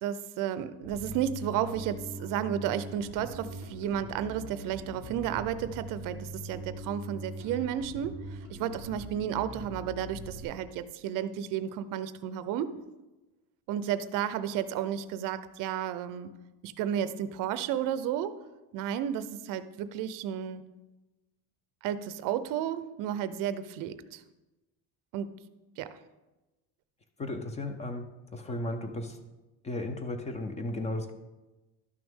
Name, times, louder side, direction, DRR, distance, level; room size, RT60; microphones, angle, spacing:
voice 1, 0.0-12.8 13.7-16.3 16.6-18.4 18.7-20.6 21.8-24.2 25.1-25.3 25.8-26.0, right 10 dB, 50° right, 13 dB, 0.5 m, -32 dB
Bass guitar, 0.8-10.4, right 1 dB, 85° left, 2.3 m, -42 dB
voice 2, 27.2-28.1 28.3-29.2 29.6-31.1, left 2 dB, 15° left, 7 dB, 0.4 m, -34 dB
12.0 x 6.1 x 3.6 m, 1.1 s
cardioid pair, 175°, 40 cm